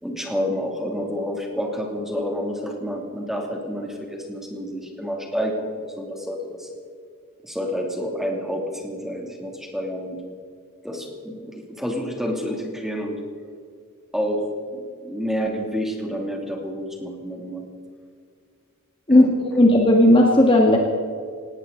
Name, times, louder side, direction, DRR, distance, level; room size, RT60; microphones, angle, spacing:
voice 1, 0.0-6.7 7.4-10.2 10.8-13.2 14.1-17.6 19.1-19.3, equal, ahead, 1 dB, 2.8 m, -29 dB
voice 2, 19.1-20.8, left 1 dB, 25° left, 0 dB, 1.9 m, -15 dB
18.5 x 18.5 x 4.0 m, 2.2 s
head